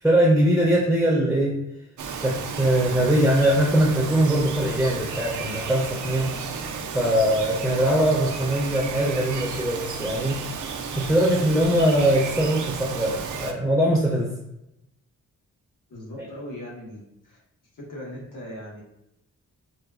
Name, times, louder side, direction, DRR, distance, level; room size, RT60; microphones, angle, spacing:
voice 1, 0.0-1.6 2.2-6.3 6.9-10.4 11.0-14.3, right 1 dB, 5° right, -3 dB, 0.5 m, -21 dB
Bird vocalization bird call bird song, 2.0-13.5, right 5 dB, 70° right, 0.5 m, -33 dB
voice 2, 15.9-17.4 17.7-18.8, left 1 dB, 75° left, -4 dB, 1.2 m, -39 dB
4.1 x 2.2 x 2.3 m, 0.85 s
wide cardioid pair, 120°, 32 cm